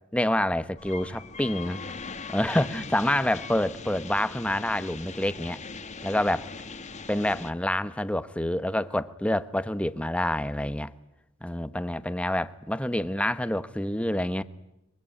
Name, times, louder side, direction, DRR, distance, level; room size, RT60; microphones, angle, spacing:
voice 1, 0.1-1.8 2.3-5.6 6.0-6.5 7.1-10.9 11.4-14.4, left 1 dB, 5° left, 1.0 m, -27 dB
sound 1, 0.8-7.5, left 4 dB, 35° left, 1.5 m, -40 dB
24.0 x 23.0 x 9.9 m
head